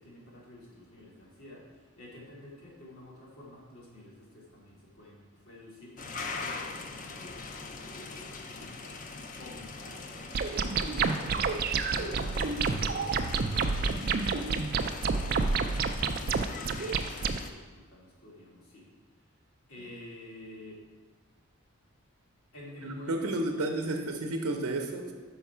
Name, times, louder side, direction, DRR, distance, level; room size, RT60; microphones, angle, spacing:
voice 1, 0.0-12.6 12.9-14.3 15.0-18.9 19.7-20.8 22.5-23.7 23.9-24.1, left 1 dB, 80° left, -5 dB, 2.1 m, -50 dB
sound 1, 6.0-17.5, left 3 dB, 35° left, 0.4 m, -42 dB
sound 2, 10.3-17.4, right 4 dB, 45° right, 0.3 m, -29 dB
voice 2, 22.8-25.1, right 2 dB, 90° right, 4 dB, 0.7 m, -31 dB
5.7 x 4.7 x 5.5 m, 1.4 s
head